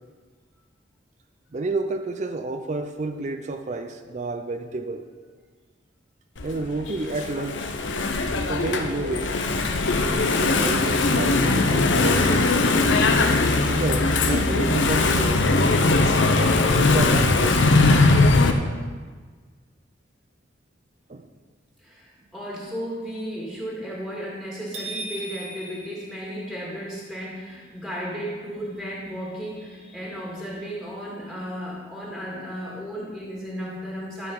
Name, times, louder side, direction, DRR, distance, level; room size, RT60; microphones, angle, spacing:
voice 1, 1.5-5.0 6.4-7.8 8.5-9.4 10.4-12.8 13.7-15.6 16.7-17.8 21.1-21.3, right 2 dB, 40° right, 7 dB, 0.5 m, -30 dB
Engine / Mechanisms, 6.4-18.5, left 3 dB, 85° left, 0.7 m, -20 dB
voice 2, 21.8-34.3, equal, ahead, -5 dB, 1.9 m, -34 dB
sound 1, 24.7-26.9, right 2 dB, 75° right, 1.9 m, -37 dB
12.0 x 4.9 x 5.4 m, 1.5 s
head